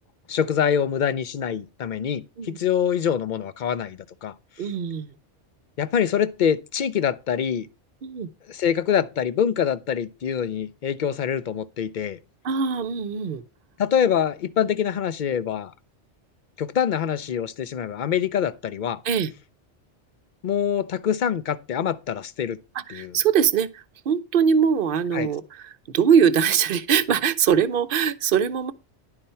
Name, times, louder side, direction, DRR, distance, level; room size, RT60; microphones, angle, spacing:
voice 1, 0.3-4.3 5.8-7.7 8.5-12.2 13.8-15.7 16.6-19.0 20.4-22.6 22.9-23.1 25.1-25.3, left 8 dB, 55° left, 0.6 m, -25 dB
voice 2, 4.6-5.1 8.0-8.3 12.4-13.4 19.0-19.3 22.7-28.7, right 7 dB, 55° right, 0.7 m, -22 dB
10.5 x 4.3 x 5.5 m
omnidirectional pair, 1.2 m